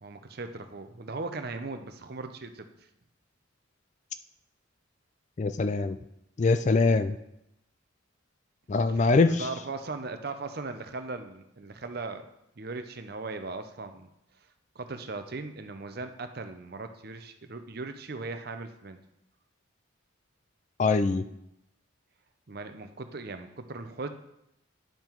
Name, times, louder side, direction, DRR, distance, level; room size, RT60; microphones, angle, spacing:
voice 1, 0.0-2.7 8.9-12.3 12.6-14.1 14.7-19.0 22.5-24.1, right 3 dB, 50° right, 8 dB, 0.6 m, -38 dB
voice 2, 5.4-6.0 6.4-7.1 8.7-9.5 20.8-21.2, left 3 dB, 35° left, 12 dB, 0.3 m, -23 dB
10.5 x 5.7 x 4.5 m, 0.84 s
head